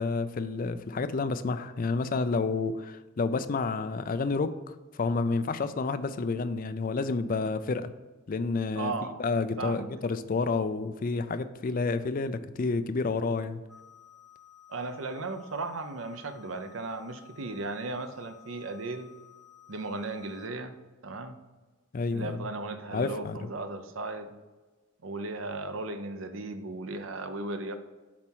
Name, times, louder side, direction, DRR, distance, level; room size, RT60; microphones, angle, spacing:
voice 1, 0.0-7.9 8.3-8.9 9.2-13.6 21.9-22.4 22.9-23.4, left 4 dB, 45° left, 11 dB, 0.4 m, -30 dB
voice 2, 8.7-9.2 9.6-9.9 14.7-19.1 19.7-20.8 21.0-21.4 22.1-24.3 25.0-27.7, right 2 dB, 75° right, 8 dB, 0.7 m, -36 dB
sound 1, 13.7-20.5, left 11 dB, ahead, 0.6 m, -55 dB
7.3 x 4.3 x 4.5 m, 1.3 s
head